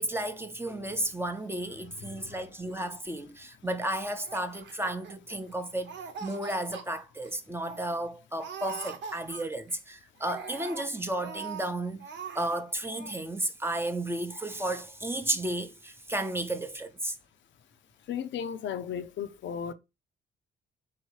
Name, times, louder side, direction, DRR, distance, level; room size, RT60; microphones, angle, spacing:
voice 1, 0.0-5.9 6.2-12.1 12.3-17.1, right 1 dB, 10° right, 0.7 m, -33 dB
Laughter, 4.2-5.5 5.8-6.8 7.2-7.3 7.6-8.0 8.4-9.7 10.2-11.7 12.0-12.6 12.9-13.2, right 6 dB, 65° right, 1.0 m, -42 dB
voice 2, 18.1-19.7, left 8 dB, 70° left, 0.6 m, -35 dB
3.8 x 2.9 x 4.6 m
cardioid pair, 90°, 20 cm